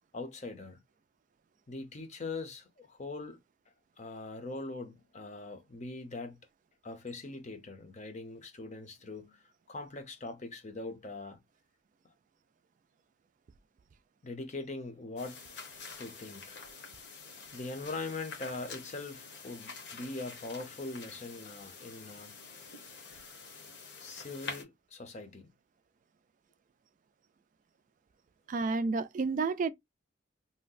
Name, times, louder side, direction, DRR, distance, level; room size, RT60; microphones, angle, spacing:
voice 1, 0.1-0.8 1.7-3.4 4.0-6.4 6.8-11.4 14.2-15.4 16.0-16.6 17.5-22.4 24.0-25.5, left 3 dB, 40° left, 0.6 m, -42 dB
sound 1, 15.2-24.6, left 4 dB, 65° left, 0.9 m, -47 dB
voice 2, 28.5-29.7, right 4 dB, 45° right, 0.3 m, -30 dB
2.7 x 2.1 x 3.8 m
head